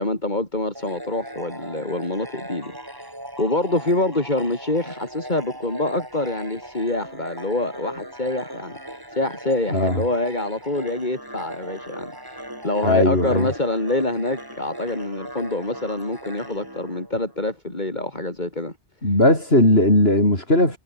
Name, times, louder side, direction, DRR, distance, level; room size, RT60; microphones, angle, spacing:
voice 1, 0.0-2.8 3.4-18.7, left 2 dB, 45° left, 4.3 m, -26 dB
sound 1, 0.8-17.5, right 1 dB, 20° right, 6.0 m, -38 dB
voice 2, 9.7-10.0 12.8-13.5 19.0-20.8, left 1 dB, 65° left, 7.8 m, -17 dB
omnidirectional pair, 1.1 m